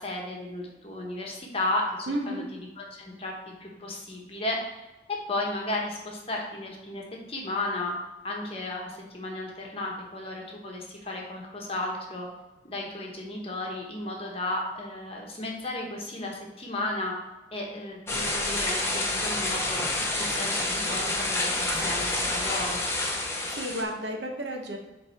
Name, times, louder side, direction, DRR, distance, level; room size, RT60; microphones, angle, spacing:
voice 1, 0.0-2.4 2.8-3.3 3.6-4.6 5.3-7.0 7.3-8.0 8.2-12.3 12.6-17.1 17.5-19.8 20.1-22.8, left 2 dB, 30° left, -1 dB, 1.2 m, -34 dB
voice 2, 2.1-2.4 23.5-24.8, right 1 dB, 70° right, 2 dB, 1.0 m, -32 dB
sound 1, 18.1-23.8, left 2 dB, 15° left, 0.9 m, -28 dB
7.8 x 3.3 x 4.2 m, 1.1 s
head